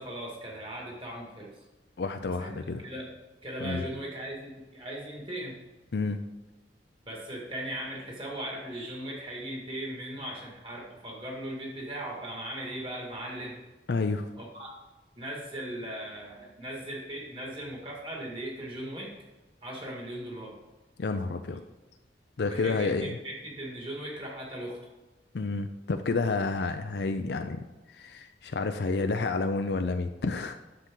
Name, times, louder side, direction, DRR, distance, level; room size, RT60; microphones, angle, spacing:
voice 1, 0.0-1.6 2.4-2.5 2.8-3.1 3.4-5.6 7.0-13.6 14.4-14.7 15.2-19.1 19.6-20.6 21.5-21.6 22.5-24.8, right 1 dB, 30° right, -2 dB, 2.2 m, -38 dB
voice 2, 2.0-2.8 3.6-3.8 5.9-6.2 13.9-14.3 21.0-21.6 22.4-23.2 25.3-27.6 27.9-30.6, left 3 dB, 65° left, 7 dB, 0.5 m, -30 dB
10.0 x 7.1 x 3.8 m, 1.1 s
head